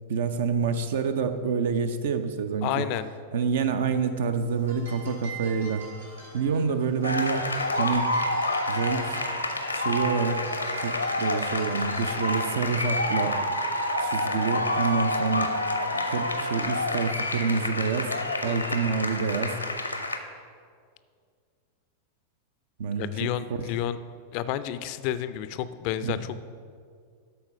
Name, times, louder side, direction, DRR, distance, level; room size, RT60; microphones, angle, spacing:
voice 1, 0.1-2.8 3.3-5.8 6.3-7.4 7.8-8.2 8.7-9.2 9.7-10.5 10.8-13.4 14.0-15.6 16.0-18.2 18.4-19.6 22.8-23.3 26.0-26.2, right 5 dB, 55° right, 9 dB, 0.6 m, -27 dB
voice 2, 2.6-3.1 18.5-18.8 23.0-24.0 24.3-26.4, left 12 dB, 45° left, 13 dB, 0.4 m, -31 dB
sound 1, 4.4-14.8, right 4 dB, 75° right, 2.2 m, -46 dB
sound 2, 7.0-20.2, left 1 dB, 85° left, 0.7 m, -28 dB
12.5 x 4.3 x 5.7 m, 2.1 s
figure-of-eight pair, 90°, 0 cm